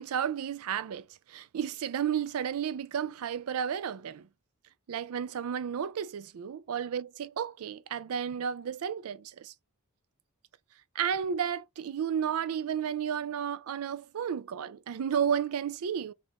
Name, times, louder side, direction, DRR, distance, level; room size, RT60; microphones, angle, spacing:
voice 1, 0.0-4.3 4.9-9.5 10.9-16.1, right 8 dB, 75° right, 0.4 m, -32 dB
3.5 x 2.5 x 3.5 m
head